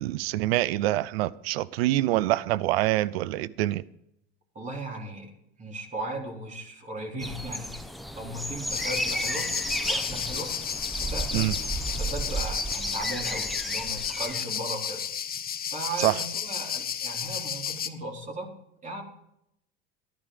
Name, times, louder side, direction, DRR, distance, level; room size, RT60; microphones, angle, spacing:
voice 1, 0.0-3.8 11.3-11.6 16.0-16.1, right 16 dB, 80° right, 0.6 m, -25 dB
voice 2, 4.6-5.3 5.6-7.8 8.2-10.6 11.0-15.0 15.7-18.5 18.8-19.0, right 1 dB, 25° right, 3.6 m, -37 dB
sound 1, 7.2-14.4, right 1 dB, ahead, 0.9 m, -33 dB
sound 2, 8.7-17.9, left 8 dB, 30° left, 1.1 m, -33 dB
14.0 x 11.5 x 4.9 m
hypercardioid pair, 90°, 30 cm